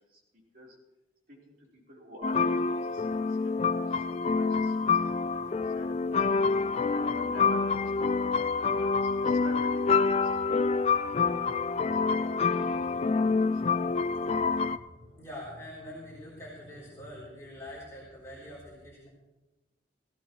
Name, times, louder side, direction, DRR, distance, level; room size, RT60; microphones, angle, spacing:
voice 1, 0.1-0.8 1.3-6.2 6.7-8.1 8.6-11.6 11.9-13.8, right 1 dB, 55° right, -4 dB, 4.1 m, -49 dB
sound 1, 2.2-14.8, left 4 dB, 35° left, 0.4 m, -27 dB
sound 2, 4.8-17.3, left 1 dB, 80° right, 3.3 m, -55 dB
voice 2, 13.7-19.1, left 1 dB, 15° left, -7 dB, 3.6 m, -46 dB
17.5 x 17.0 x 3.2 m, 1.1 s
head